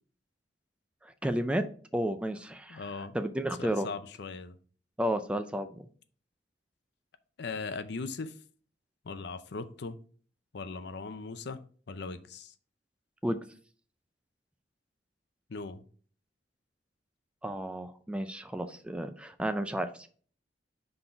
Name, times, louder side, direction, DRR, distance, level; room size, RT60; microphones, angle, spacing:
voice 1, 1.0-1.6 1.9-3.9 5.0-5.9 13.2-13.4 17.4-20.1, right 1 dB, 5° right, 9 dB, 0.4 m, -32 dB
voice 2, 2.7-3.2 3.6-4.6 7.4-8.3 9.0-10.0 10.5-12.5 15.5-15.8, left 4 dB, 65° left, 12 dB, 0.6 m, -39 dB
5.9 x 3.8 x 4.5 m, 0.44 s
head